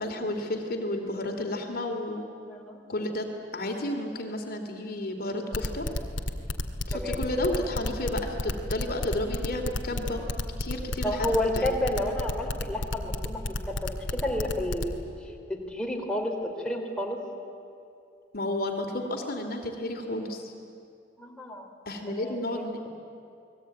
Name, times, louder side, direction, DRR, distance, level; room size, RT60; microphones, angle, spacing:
voice 1, 0.0-2.2 2.9-3.2 3.5-5.9 6.9-10.2 10.6-11.6 18.3-20.5 21.9-22.9, left 1 dB, 55° left, 3 dB, 2.8 m, -32 dB
voice 2, 2.5-2.8 6.9-7.2 11.0-13.4 13.7-15.0 15.5-16.3 16.6-17.2 21.2-21.7 22.1-22.6, left 1 dB, 5° left, 0 dB, 3.2 m, -30 dB
sound 1, 5.5-14.9, left 2 dB, 85° left, 1.9 m, -30 dB
29.5 x 20.5 x 9.1 m, 2.6 s
head